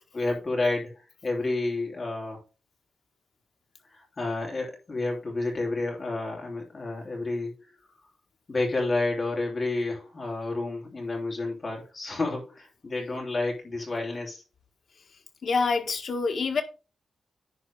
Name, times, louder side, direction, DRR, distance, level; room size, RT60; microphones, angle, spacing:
voice 1, 0.1-0.9 1.2-2.4 3.9-7.9 8.5-14.4, left 2 dB, 30° left, 3.3 m, -30 dB
voice 2, 15.4-16.6, left 4 dB, 55° left, 1.6 m, -26 dB
10.5 x 4.5 x 4.7 m
wide cardioid pair, 160°, 0 cm